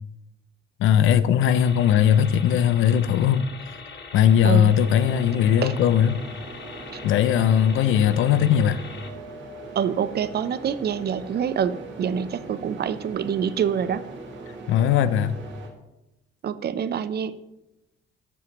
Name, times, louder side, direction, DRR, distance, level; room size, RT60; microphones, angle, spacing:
voice 1, 0.8-3.5 4.1-6.2 7.0-8.8 14.7-15.4, left 9 dB, 85° left, 14 dB, 0.6 m, -19 dB
sound 1, 1.4-9.1, left 4 dB, 60° left, 1.5 m, -41 dB
sound 2, 4.6-15.7, right 3 dB, 70° right, 2.3 m, -41 dB
voice 2, 9.7-14.1 16.4-17.3, right 8 dB, 55° right, 13 dB, 0.7 m, -26 dB
13.5 x 8.0 x 3.1 m, 0.93 s
cardioid pair, 90°, 20 cm